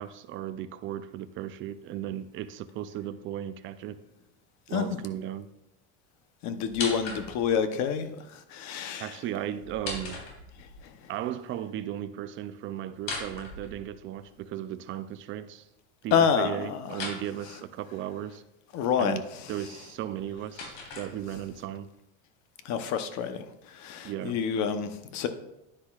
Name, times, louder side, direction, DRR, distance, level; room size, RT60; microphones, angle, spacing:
voice 1, 0.0-4.0 4.7-5.5 9.0-10.2 11.1-15.6 16.0-18.4 19.0-19.2 19.5-21.9 24.0-24.4, right 11 dB, 35° right, 0.5 m, -36 dB
voice 2, 6.4-9.2 10.8-11.1 16.1-17.0 18.7-19.5 22.6-25.3, left 7 dB, 50° left, 0.9 m, -28 dB
sound 1, 6.6-7.6 9.6-10.8 12.9-14.3 16.9-17.2 20.0-21.6, left 3 dB, 90° left, 3.6 m, -38 dB
10.0 x 9.9 x 2.4 m
cardioid pair, 150°, 35 cm